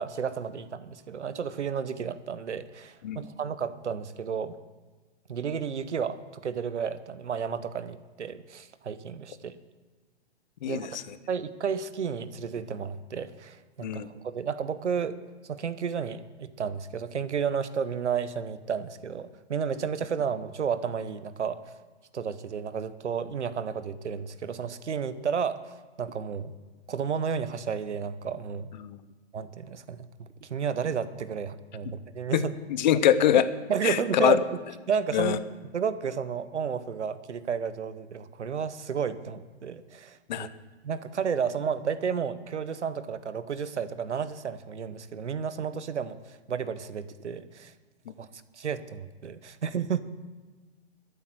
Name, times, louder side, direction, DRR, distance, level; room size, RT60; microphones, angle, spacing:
voice 1, 0.0-4.6 5.3-9.5 10.6-11.0 11.3-15.2 15.5-21.6 22.1-25.7 26.0-26.5 26.9-28.7 29.3-32.5 33.7-34.4 34.9-35.4 35.7-40.5 40.8-46.2 46.5-47.7 48.2-48.3 48.6-50.0, right 6 dB, 90° right, 14 dB, 1.1 m, -32 dB
voice 2, 10.6-11.0 13.8-14.1 28.8-29.0 32.3-32.4 32.8-33.5 33.8-34.4 35.1-35.4 40.3-40.5, left 10 dB, 40° left, 14 dB, 0.9 m, -23 dB
13.0 x 8.3 x 7.7 m, 1.3 s
hypercardioid pair, 150°, 34 cm